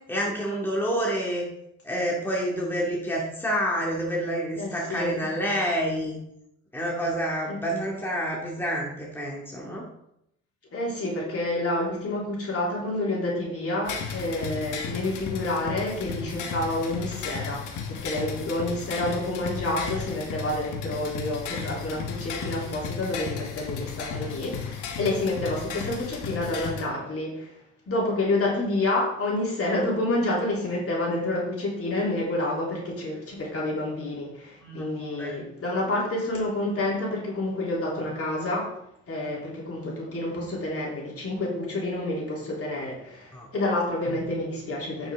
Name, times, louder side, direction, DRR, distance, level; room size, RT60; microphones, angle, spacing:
voice 1, 0.1-1.5 1.8-6.2 6.7-9.9 34.6-35.4 43.3-43.5, equal, 5° left, -3 dB, 2.2 m, -28 dB
voice 2, 4.6-5.3 7.5-7.9 10.7-27.6 27.9-38.7 39.1-45.1, left 2 dB, 50° left, -3 dB, 3.4 m, -29 dB
sound 1, 13.9-26.8, left 6 dB, 80° left, 1.4 m, -34 dB
9.5 x 6.2 x 3.7 m, 0.77 s
cardioid pair, 90°, 30 cm